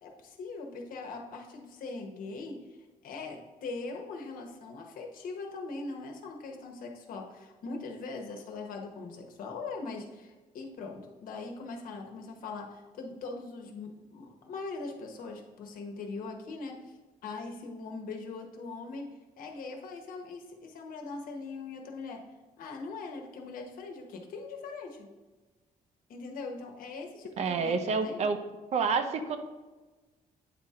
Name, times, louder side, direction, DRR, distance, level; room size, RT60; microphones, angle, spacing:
voice 1, 0.0-2.6 3.0-16.9 17.2-19.1 19.4-22.2 22.6-25.1 26.1-28.3, left 3 dB, 75° left, 2 dB, 1.1 m, -41 dB
voice 2, 27.4-28.4 28.7-29.4, right 5 dB, 50° right, 8 dB, 0.5 m, -28 dB
8.8 x 4.3 x 3.7 m, 1.2 s
cardioid pair, 170°, 15 cm